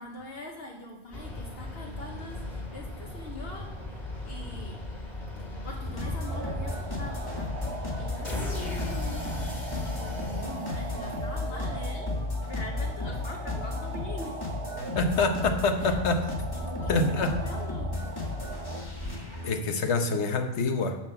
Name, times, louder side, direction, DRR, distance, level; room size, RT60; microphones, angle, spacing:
voice 1, 0.0-4.9 5.4-14.6 15.8-16.0 16.5-18.3 19.2-19.3, left 2 dB, 65° left, 0 dB, 1.1 m, -44 dB
sound 1, 1.1-11.4, left 1 dB, 45° left, 1.8 m, -38 dB
sound 2, 5.8-19.6, left 2 dB, 20° left, 1.5 m, -34 dB
sound 3, 6.2-18.8, right 4 dB, 75° right, 1.4 m, -41 dB
voice 2, 14.9-16.3 16.9-17.4 19.4-21.0, left 3 dB, 85° left, 6 dB, 1.3 m, -26 dB
7.2 x 6.4 x 6.8 m, 0.97 s
omnidirectional pair, 1.1 m